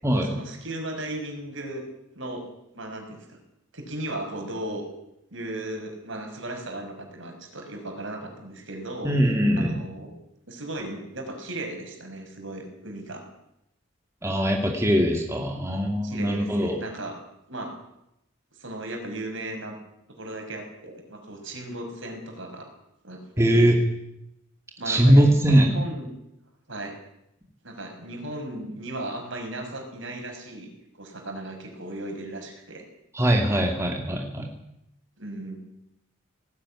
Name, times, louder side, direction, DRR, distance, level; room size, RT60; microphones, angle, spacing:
voice 1, 0.2-1.8 2.1-2.5 2.7-3.4 3.7-4.8 5.3-9.1 9.5-10.1 10.5-13.2 16.0-17.2 17.5-17.8 18.6-19.8 20.1-22.7 23.0-23.7 24.8-26.1 26.7-26.9 27.6-30.7 31.0-32.8 35.2-35.6, right 1 dB, 60° right, 4 dB, 6.0 m, -36 dB
voice 2, 9.0-9.8 14.2-16.8 23.4-23.8 24.9-25.7 33.1-34.5, equal, 15° right, 1 dB, 2.4 m, -21 dB
18.5 x 18.0 x 9.9 m, 0.84 s
head